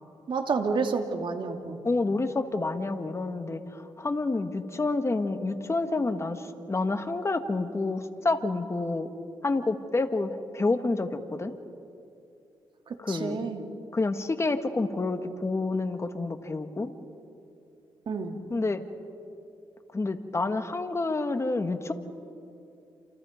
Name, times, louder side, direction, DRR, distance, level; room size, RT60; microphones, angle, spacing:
voice 1, 0.3-1.8 12.9-13.6 18.1-18.4, right 4 dB, 60° right, 5 dB, 2.6 m, -30 dB
voice 2, 1.8-9.1 9.4-11.5 13.0-13.4 13.9-16.9 18.5-18.8 19.9-21.9, left 3 dB, 30° left, 8 dB, 1.8 m, -28 dB
29.0 x 27.5 x 5.2 m, 2.7 s
cardioid pair, 70°, 10 cm